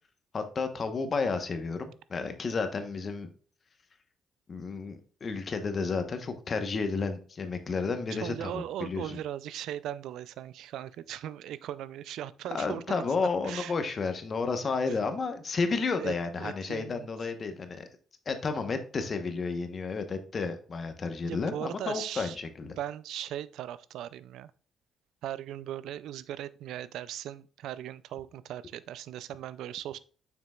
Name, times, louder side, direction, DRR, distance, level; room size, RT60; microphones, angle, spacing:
voice 1, 0.3-3.3 4.5-9.2 12.5-17.8 18.3-22.8, left 4 dB, 40° left, 1.0 m, -32 dB
voice 2, 8.1-13.0 13.4-14.0 14.9-15.0 16.0-17.1 21.2-22.4 22.8-24.5 25.2-30.0, right 11 dB, 85° right, 0.3 m, -38 dB
7.3 x 5.9 x 2.3 m
cardioid pair, 90°, 0 cm